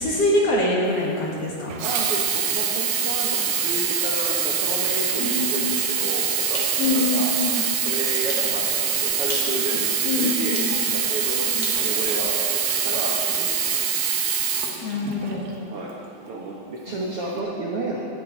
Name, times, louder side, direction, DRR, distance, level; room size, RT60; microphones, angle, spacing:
voice 1, 0.0-1.7 5.2-5.8 6.8-7.6 10.0-10.8 11.5-11.7 14.8-15.5, left 2 dB, 50° left, -2 dB, 2.1 m, -24 dB
Sink (filling or washing), 1.7-15.5 16.2-16.3, right 8 dB, 70° right, 2.8 m, -24 dB
voice 2, 1.8-7.3 7.8-13.9 15.6-15.9 16.2-18.0, right 2 dB, 90° right, -2 dB, 1.2 m, -32 dB
sound 1, 5.6-6.0 6.5-6.8 7.3-7.4 8.3-8.5 9.2-9.6 10.5-10.8 11.6-12.9, left 1 dB, 35° left, 2.5 m, -35 dB
11.0 x 9.1 x 9.0 m, 2.7 s
omnidirectional pair, 4.6 m